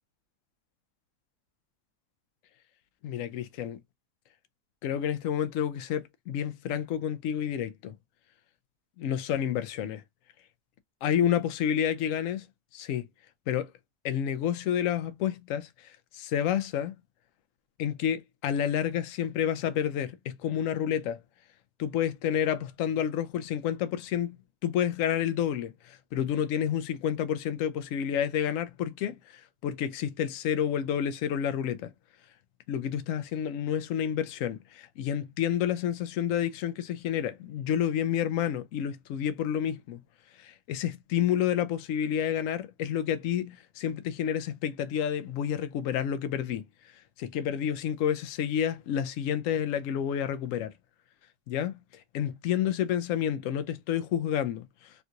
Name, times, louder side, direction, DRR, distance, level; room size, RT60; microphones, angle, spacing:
voice 1, 3.0-3.8 4.8-8.0 9.0-10.0 11.0-12.4 12.7-13.1 13.5-13.7 14.0-16.9 17.8-21.2 21.8-24.4 24.6-31.9 32.7-40.0 40.4-46.7 47.2-50.7 51.5-51.8 52.1-54.7, left 9 dB, 70° left, 0.7 m, -29 dB
3.5 x 2.8 x 2.5 m
omnidirectional pair, 1.8 m